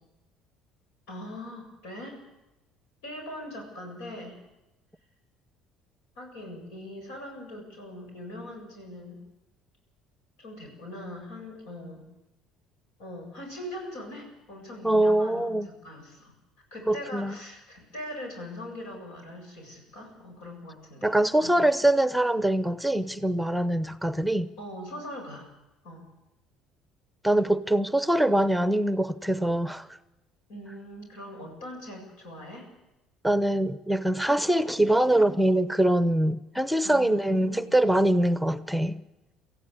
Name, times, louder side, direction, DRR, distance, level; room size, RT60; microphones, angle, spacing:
voice 1, 1.1-2.2 3.0-4.4 6.2-9.2 10.4-12.0 13.0-15.5 15.8-16.3 16.7-21.5 24.6-25.5 25.8-26.0 30.5-32.7 36.8-37.8, left 1 dB, 85° left, 1 dB, 7.8 m, -41 dB
voice 2, 14.8-15.7 16.9-17.4 21.0-24.5 27.2-29.9 33.2-39.0, right 1 dB, ahead, 14 dB, 0.8 m, -23 dB
24.0 x 15.0 x 8.4 m, 0.99 s
supercardioid pair, 85°, 0 cm